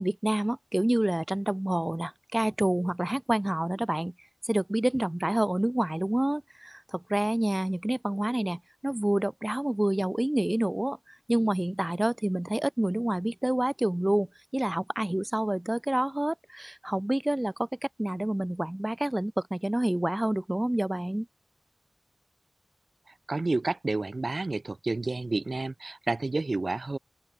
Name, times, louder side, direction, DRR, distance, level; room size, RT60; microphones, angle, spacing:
voice 1, 0.0-4.1 4.4-14.3 14.5-17.7 18.0-21.3, right 1 dB, 20° right, 1.0 m, -28 dB
voice 2, 23.3-27.0, right 3 dB, 55° right, 1.4 m, -30 dB
open air
wide cardioid pair, 75°, 0 cm